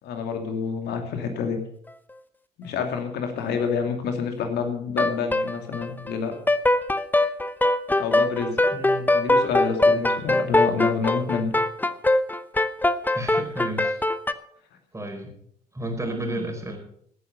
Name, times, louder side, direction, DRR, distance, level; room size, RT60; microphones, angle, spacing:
voice 1, 0.0-1.6 2.6-6.3 8.0-8.6 9.1-11.5 16.1-16.4, left 6 dB, 60° left, 5 dB, 2.6 m, -28 dB
sound 1, 5.0-6.2 6.5-14.3, left 2 dB, 10° left, 0.9 m, -22 dB
voice 2, 8.7-9.1 13.1-14.0 14.9-15.3 15.7-16.8, right 1 dB, 15° right, 3 dB, 4.7 m, -32 dB
17.0 x 9.6 x 5.5 m, 0.67 s
hypercardioid pair, 50°, 19 cm